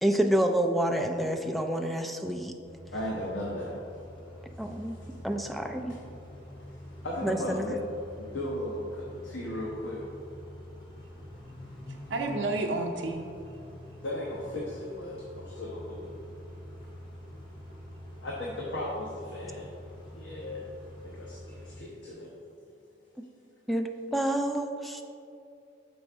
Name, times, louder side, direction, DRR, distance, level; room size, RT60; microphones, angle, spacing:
voice 1, 0.0-2.5 4.6-5.0 5.2-5.9 7.2-7.7 23.7-25.0, right 1 dB, ahead, 5 dB, 0.3 m, -28 dB
Car / Idling / Accelerating revving vroom, 2.6-21.7, left 1 dB, 25° left, 1.3 m, -46 dB
voice 2, 2.9-3.8 4.6-5.1 7.0-7.8 8.2-10.0 14.0-16.1 18.2-19.7 20.1-20.6 21.0-22.3, left 1 dB, 80° left, -4 dB, 0.9 m, -36 dB
voice 3, 11.9-13.3, right 2 dB, 80° right, 2 dB, 0.6 m, -31 dB
6.7 x 5.2 x 3.6 m, 2.5 s
head